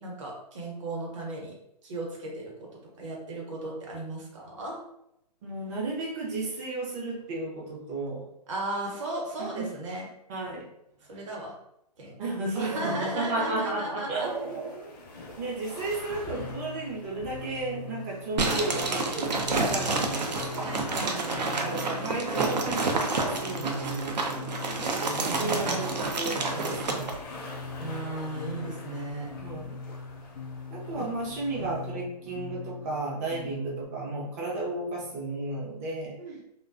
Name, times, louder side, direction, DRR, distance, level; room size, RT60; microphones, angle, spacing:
voice 1, 0.0-1.6 1.8-2.7 3.0-4.8 8.5-10.1 11.0-11.6 12.0-14.3 20.6-22.2 25.3-25.9 27.8-29.3 31.0-31.1 31.6-31.7 36.2-36.5, right 2 dB, 45° right, -1 dB, 0.8 m, -36 dB
voice 2, 5.4-8.3 9.4-9.7 10.3-10.7 12.2-14.9 15.4-20.8 21.6-27.2 29.4-29.8 30.7-36.2, right 2 dB, 20° right, -2 dB, 0.4 m, -33 dB
sound 1, 14.2-31.9, left 2 dB, 35° left, 0.5 m, -46 dB
sound 2, 16.3-33.8, left 4 dB, 90° left, 0.5 m, -42 dB
sound 3, 18.4-27.2, right 3 dB, 85° right, 0.5 m, -29 dB
2.4 x 2.2 x 2.4 m, 0.81 s
hypercardioid pair, 140°, 21 cm